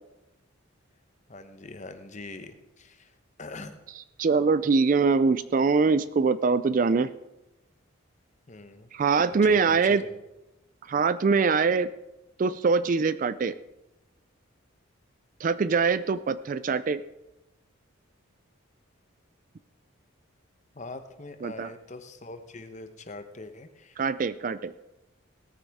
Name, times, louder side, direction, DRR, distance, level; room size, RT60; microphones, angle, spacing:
voice 1, 1.3-3.8 8.5-8.9 9.3-10.2 20.7-24.0, left 2 dB, 35° left, 8 dB, 0.9 m, -42 dB
voice 2, 4.2-7.1 8.9-10.0 10.9-11.9 12.4-13.6 15.4-17.0 21.4-21.7 24.0-24.7, right 4 dB, 40° right, 15 dB, 0.3 m, -23 dB
17.5 x 9.3 x 3.6 m, 0.97 s
head